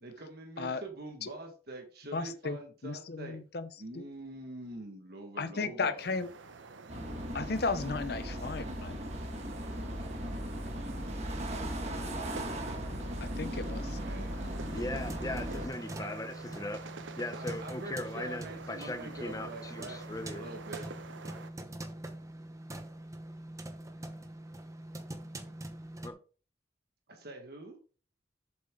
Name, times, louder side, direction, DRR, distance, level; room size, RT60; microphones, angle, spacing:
voice 1, 0.0-3.4 3.8-6.1 13.9-14.5 15.5-15.6 16.0-16.2 17.3-20.0 20.3-20.9 27.1-27.8, right 2 dB, 55° right, 1.6 m, -45 dB
voice 2, 2.1-2.6 2.8-3.7 3.9-4.0 5.4-6.3 7.3-9.0 13.2-14.0 14.3-14.6, left 4 dB, 55° left, 0.7 m, -35 dB
sound 1, 6.0-21.5, right 4 dB, 85° right, 0.8 m, -48 dB
sound 2, 6.9-15.7, equal, 35° right, 1.5 m, -37 dB
voice 3, 14.7-16.9 17.2-20.5 26.0-26.2, left 1 dB, 20° left, 0.7 m, -39 dB
sound 3, 14.9-26.1, right 1 dB, 15° right, 1.0 m, -44 dB
7.8 x 7.4 x 3.7 m
head